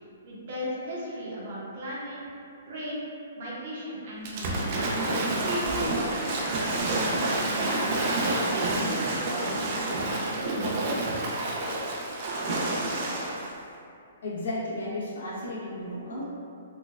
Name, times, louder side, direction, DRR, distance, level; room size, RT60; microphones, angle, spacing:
voice 1, 0.2-2.2 2.7-3.0 3.4-4.8 5.3-7.9 8.4-11.2, right 1 dB, 50° right, -6 dB, 0.8 m, -36 dB
Waves surf / Splash splatter, 4.2-13.5, right 2 dB, 35° right, 0.4 m, -28 dB
voice 2, 14.2-16.2, left 1 dB, 85° left, -8 dB, 1.1 m, -33 dB
3.8 x 2.2 x 2.4 m, 2.4 s
hypercardioid pair, 170°, 0 cm